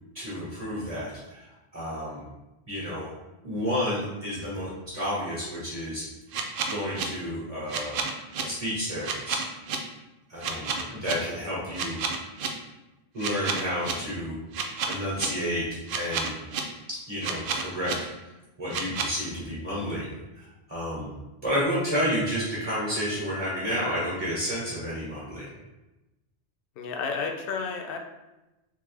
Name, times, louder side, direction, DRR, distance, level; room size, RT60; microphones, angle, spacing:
voice 1, 0.1-2.2 2.7-3.1 3.4-6.0 6.7-8.0 8.4-9.4 10.3-12.0 13.1-14.4 14.9-16.4 16.9-18.1 18.6-20.1 20.3-21.1 21.4-25.5, equal, 35° right, -8 dB, 1.2 m, -31 dB
sound 1, 6.3-7.0 7.7-8.4 9.0-9.8 10.4-11.1 11.7-12.5 13.2-13.9 14.5-15.3 15.9-16.6 17.2-17.9 18.7-19.1, right 6 dB, 65° right, 0.7 m, -30 dB
voice 2, 10.5-11.0 26.8-28.0, left 5 dB, 65° left, 3 dB, 0.7 m, -33 dB
3.4 x 3.2 x 3.2 m, 1.0 s
omnidirectional pair, 1.1 m